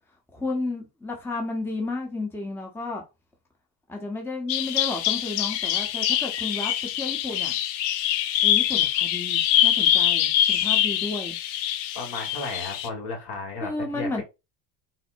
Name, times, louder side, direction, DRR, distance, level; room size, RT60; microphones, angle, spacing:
voice 1, 0.3-3.0 3.9-7.5 8.4-11.4 13.6-14.2, left 2 dB, 5° left, 0.8 m, -32 dB
Bird vocalization bird call bird song, 4.5-12.9, left 11 dB, 85° left, 0.5 m, -24 dB
voice 2, 11.9-14.2, left 3 dB, 50° left, 1.6 m, -34 dB
4.1 x 2.1 x 2.6 m
hypercardioid pair, 75°, 50 cm